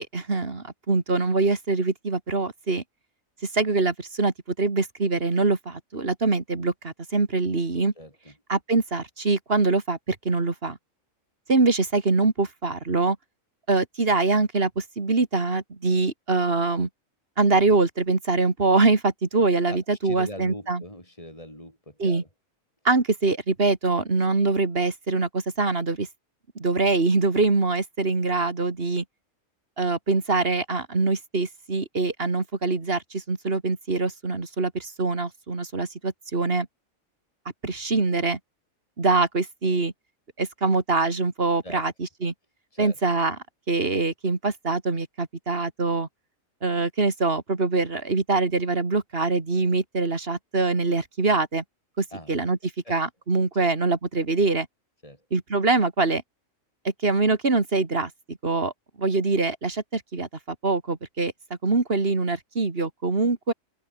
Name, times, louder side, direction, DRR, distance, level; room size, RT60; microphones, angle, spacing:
voice 1, 0.0-2.8 3.5-7.9 8.5-10.8 11.5-13.2 13.7-16.9 17.4-20.8 22.0-22.2 22.8-26.1 26.6-29.0 29.8-36.7 37.6-38.4 39.0-39.9 40.4-42.3 42.8-43.4 43.7-46.1 46.6-51.6 52.0-52.6 52.9-54.7 55.3-56.2 56.8-58.7 59.0-61.3 61.6-63.5, right 3 dB, 45° right, 2.6 m, -24 dB
voice 2, 8.0-8.3 19.7-22.3 41.6-41.8 42.7-43.0 52.1-52.3 52.8-53.0 53.5-53.7 55.0-55.2, left 1 dB, 25° left, 8.0 m, -41 dB
omnidirectional pair, 1.4 m